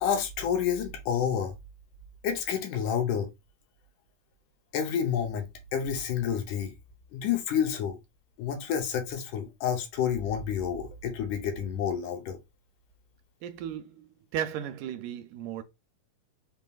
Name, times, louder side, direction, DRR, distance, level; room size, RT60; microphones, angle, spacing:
voice 1, 0.0-1.5 2.2-3.3 4.7-5.5 5.7-6.7 7.1-8.0 8.4-12.4, left 8 dB, 75° left, 2.3 m, -29 dB
voice 2, 13.4-15.6, right 9 dB, 80° right, 2.1 m, -35 dB
5.4 x 3.6 x 2.3 m
omnidirectional pair, 3.8 m